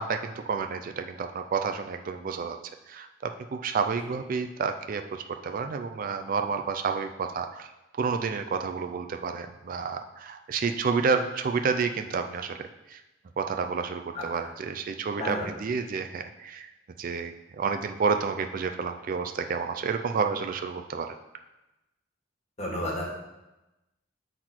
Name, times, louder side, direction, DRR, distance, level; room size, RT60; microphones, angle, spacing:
voice 1, 0.0-2.6 2.9-7.7 8.0-13.0 13.4-16.7 17.0-21.1, right 5 dB, 45° right, 6 dB, 0.4 m, -30 dB
voice 2, 22.6-23.1, left 1 dB, 35° left, -2 dB, 1.7 m, -31 dB
7.8 x 4.0 x 4.4 m, 0.98 s
head